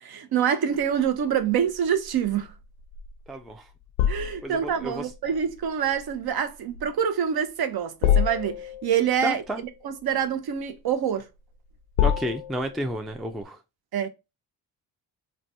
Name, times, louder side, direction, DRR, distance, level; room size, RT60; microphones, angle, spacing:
voice 1, 0.0-2.5 4.1-9.4 9.8-11.3 13.9-14.1, right 8 dB, 50° right, 0.6 m, -26 dB
sound 1, 0.7-13.4, left 9 dB, 75° left, 0.5 m, -30 dB
voice 2, 3.3-3.7 4.4-5.1 9.2-9.6 12.0-13.6, right 1 dB, ahead, 0.3 m, -31 dB
3.1 x 2.2 x 2.6 m
hypercardioid pair, 45°, 49 cm